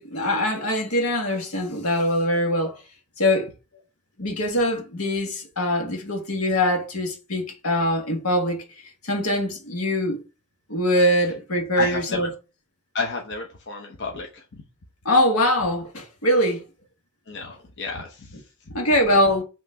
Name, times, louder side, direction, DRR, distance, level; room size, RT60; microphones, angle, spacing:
voice 1, 0.0-2.8 3.2-3.5 4.2-8.6 9.0-10.2 10.7-12.3 15.0-16.6 18.7-19.4, left 1 dB, 80° left, 1.7 m, -23 dB
voice 2, 11.7-12.3 12.9-14.4 17.3-18.8, left 4 dB, 55° left, 0.9 m, -32 dB
5.7 x 3.1 x 5.6 m
head